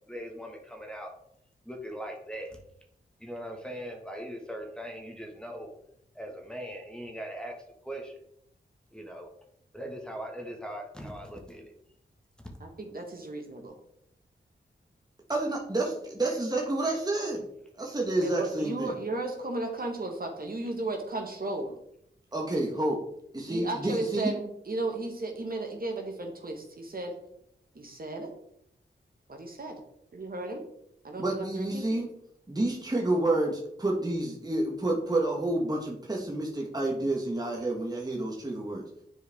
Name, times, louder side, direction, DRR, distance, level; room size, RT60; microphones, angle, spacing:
voice 1, 0.1-1.1 1.6-2.6 3.2-5.7 6.1-7.5 7.8-8.2 8.9-9.3 9.7-11.7 12.4-12.6, equal, 5° left, 2 dB, 1.6 m, -40 dB
voice 2, 12.6-13.7 18.2-21.7 23.5-27.2 27.7-28.3 29.3-29.8 30.1-30.6 31.0-31.9, right 2 dB, 50° right, 2 dB, 1.4 m, -35 dB
voice 3, 15.3-17.5 17.8-18.9 22.3-23.0 23.3-24.3 31.2-32.1 32.5-38.8, right 2 dB, 20° right, -1 dB, 1.3 m, -29 dB
8.0 x 4.7 x 3.5 m, 0.74 s
cardioid pair, 45°, 19 cm